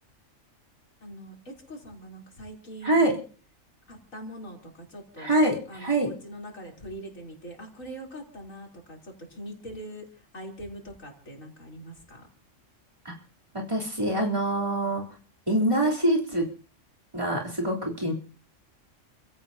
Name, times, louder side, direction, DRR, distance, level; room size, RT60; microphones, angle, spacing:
voice 1, 1.0-3.2 3.9-5.3 5.7-12.3, right 1 dB, 85° left, 0 dB, 4.0 m, -42 dB
voice 2, 2.8-3.2 5.2-6.1 13.1-13.2 13.5-15.1 15.5-16.5 17.1-18.1, right 1 dB, 20° right, -2 dB, 3.5 m, -25 dB
29.5 x 16.0 x 2.8 m, 0.41 s
omnidirectional pair, 1.4 m